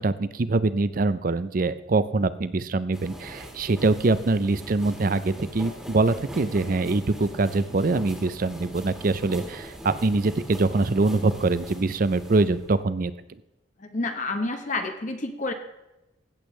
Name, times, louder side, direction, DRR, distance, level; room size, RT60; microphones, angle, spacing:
voice 1, 0.0-13.1, right 3 dB, 45° right, 14 dB, 0.5 m, -24 dB
sound 1, 2.9-12.8, equal, 5° right, 1.6 m, -41 dB
voice 2, 13.8-15.5, left 2 dB, 40° left, 5 dB, 0.9 m, -29 dB
15.5 x 8.2 x 3.2 m, 0.96 s
head